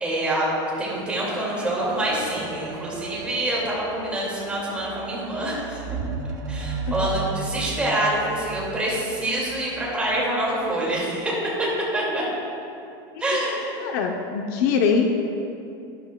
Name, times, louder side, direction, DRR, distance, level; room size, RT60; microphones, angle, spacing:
voice 1, 0.0-0.5 0.8-5.8 6.5-11.3 11.9-12.2 13.2-13.8, right 1 dB, 10° right, -6 dB, 2.0 m, -26 dB
sound 1, 1.2-10.7 11.5-11.7, right 5 dB, 30° right, 0.6 m, -35 dB
voice 2, 13.8-15.1, left 6 dB, 55° left, 3 dB, 0.6 m, -22 dB
11.5 x 11.0 x 2.2 m, 2.7 s
supercardioid pair, 175°, 12 cm